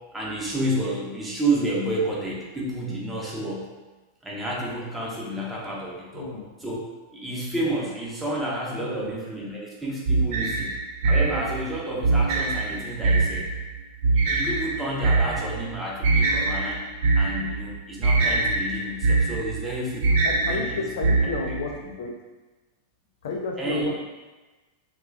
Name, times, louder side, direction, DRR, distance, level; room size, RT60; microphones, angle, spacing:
voice 1, 0.1-3.7 4.2-6.3 6.6-6.8 7.1-10.7 11.0-13.5 14.1-16.8 17.1-20.2 20.5-20.9 21.2-21.3 21.8-21.9 23.6-24.0, right 1 dB, 10° right, -4 dB, 0.8 m, -30 dB
voice 2, 6.1-6.5 8.7-9.1 20.2-21.7 22.0-22.1 23.2-24.0, left 4 dB, 55° left, 1 dB, 0.3 m, -31 dB
sound 1, 10.1-21.7, right 3 dB, 50° right, 0.4 m, -23 dB
3.1 x 2.3 x 3.3 m, 1.2 s
figure-of-eight pair, 90°, 0 cm